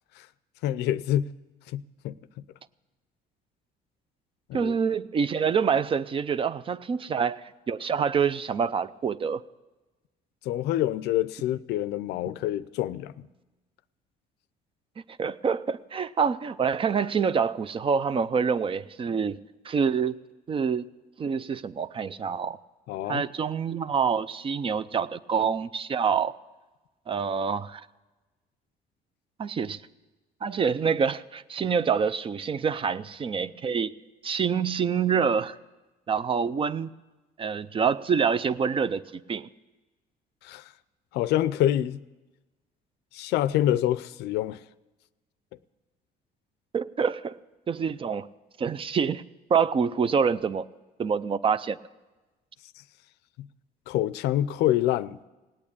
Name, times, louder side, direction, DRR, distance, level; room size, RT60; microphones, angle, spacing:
voice 1, 0.6-1.3 1.7-2.2 4.5-4.7 10.4-13.3 22.9-23.3 40.4-40.7 41.1-42.0 43.1-44.6 53.4-53.5 53.9-55.2, left 12 dB, 80° left, 17 dB, 0.5 m, -26 dB
voice 2, 4.5-9.4 15.2-19.4 19.6-20.2 20.5-20.8 21.2-22.6 23.1-26.3 27.1-27.9 29.4-29.8 30.4-33.9 34.2-35.6 36.1-36.9 37.4-39.5 46.7-47.4 47.7-48.3 48.6-49.2 49.5-50.7 51.0-51.8, right 6 dB, 30° right, 16 dB, 0.5 m, -26 dB
17.5 x 8.7 x 8.6 m, 1.1 s
cardioid pair, 110°, 17 cm